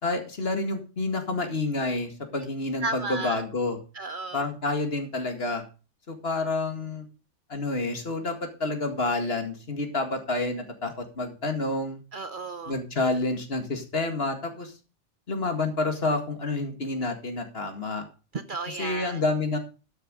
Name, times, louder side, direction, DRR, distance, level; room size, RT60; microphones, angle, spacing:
voice 1, 0.0-3.8 4.3-5.6 6.1-7.1 7.5-8.3 8.6-12.0 12.7-14.7 15.3-18.1 18.7-19.6, left 2 dB, 55° left, 2.2 m, -29 dB
voice 2, 2.8-3.4 3.9-4.5 12.1-12.7 18.3-19.2, right 3 dB, 50° right, 0.9 m, -34 dB
12.0 x 6.8 x 5.1 m
omnidirectional pair, 1.2 m